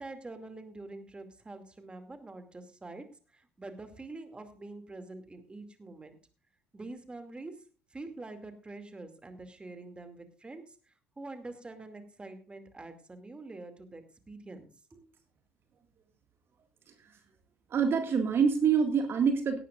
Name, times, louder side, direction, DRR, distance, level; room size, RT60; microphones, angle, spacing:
voice 1, 0.0-6.2 6.7-7.6 7.9-15.0, right 2 dB, 15° right, 8 dB, 2.4 m, -46 dB
voice 2, 16.9-17.2 17.7-19.6, right 6 dB, 40° right, 6 dB, 1.9 m, -26 dB
17.5 x 12.0 x 2.5 m, 0.35 s
figure-of-eight pair, 60°, 6 cm